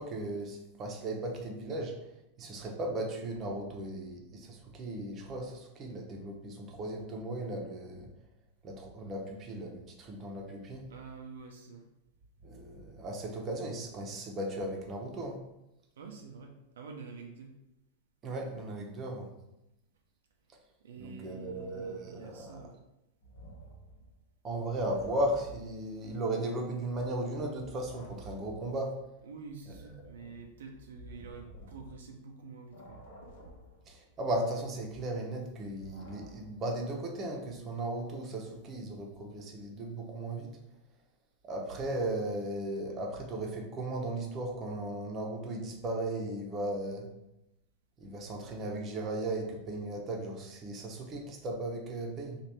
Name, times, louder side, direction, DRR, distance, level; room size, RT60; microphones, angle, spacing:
voice 1, 0.0-2.0 2.4-8.1 8.6-10.9 12.4-15.4 18.2-19.3 21.0-22.6 24.4-29.0 30.2-30.3 33.9-40.6 41.4-47.1 48.0-52.4, right 1 dB, 35° right, 0 dB, 0.8 m, -36 dB
voice 2, 10.9-11.9 16.0-17.6 20.8-22.8 29.2-33.0, right 5 dB, 80° right, 2 dB, 0.4 m, -47 dB
sound 1, 23.2-26.3 26.6-32.4 32.7-36.8, right 1 dB, 70° left, 0.9 m, -53 dB
3.2 x 2.4 x 4.2 m, 0.88 s
hypercardioid pair, 105°, 0 cm